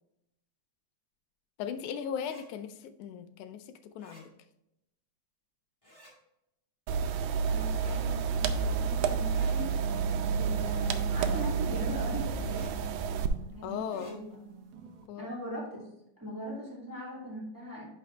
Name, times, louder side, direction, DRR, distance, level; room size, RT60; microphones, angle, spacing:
voice 1, 1.6-4.3 13.6-14.1 15.1-15.3, left 8 dB, 85° left, 10 dB, 2.1 m, -38 dB
sound 1, 2.2-2.4 4.0-4.2 5.8-6.1 7.7-8.0 9.3-9.6 11.1-11.4 12.4-12.7 13.8-14.1, left 1 dB, 10° left, 1.9 m, -53 dB
sound 2, 6.9-13.3, right 6 dB, 85° right, 2.0 m, -30 dB
voice 2, 7.4-9.7 10.3-12.7 13.6-14.2 15.2-15.9 16.2-17.8, equal, 5° right, -5 dB, 2.3 m, -40 dB
sound 3, 9.4-15.1, right 4 dB, 65° right, 1.7 m, -43 dB
10.0 x 4.7 x 3.3 m, 0.84 s
omnidirectional pair, 3.4 m